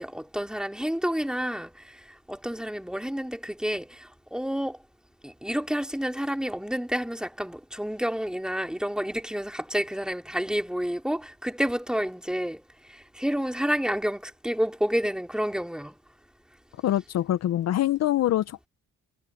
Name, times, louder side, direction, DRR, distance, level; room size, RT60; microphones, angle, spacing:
voice 1, 0.0-4.8 5.2-15.9, equal, 5° right, 3.0 m, -29 dB
voice 2, 16.8-18.7, left 13 dB, 60° left, 0.6 m, -24 dB
cardioid pair, 90°, 30 cm